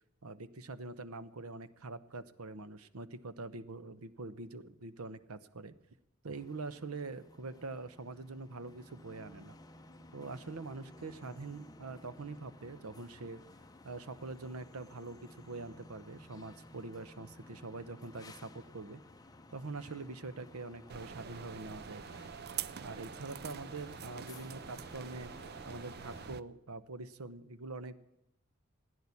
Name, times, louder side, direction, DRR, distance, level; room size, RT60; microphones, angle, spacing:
voice 1, 0.2-5.7 6.2-9.6 10.1-13.4 13.8-19.0 19.5-22.0 22.8-25.3 25.6-28.0, right 3 dB, 85° right, 14 dB, 0.9 m, -44 dB
sound 1, 6.3-26.3, left 2 dB, 15° left, 0.7 m, -55 dB
sound 2, 20.9-26.4, right 8 dB, 45° right, 0.5 m, -45 dB
16.5 x 10.0 x 8.4 m, 0.87 s
head